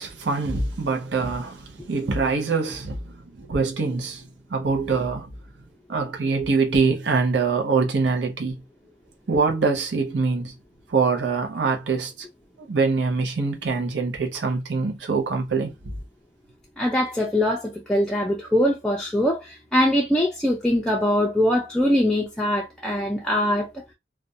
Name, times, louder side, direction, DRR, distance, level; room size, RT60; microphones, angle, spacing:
voice 1, 0.0-4.2 4.5-5.3 5.9-8.6 9.3-10.5 10.9-12.1 12.7-15.9, right 4 dB, 80° right, 0.6 m, -24 dB
voice 2, 16.8-23.8, left 1 dB, 5° left, 0.3 m, -22 dB
2.4 x 2.1 x 2.6 m
head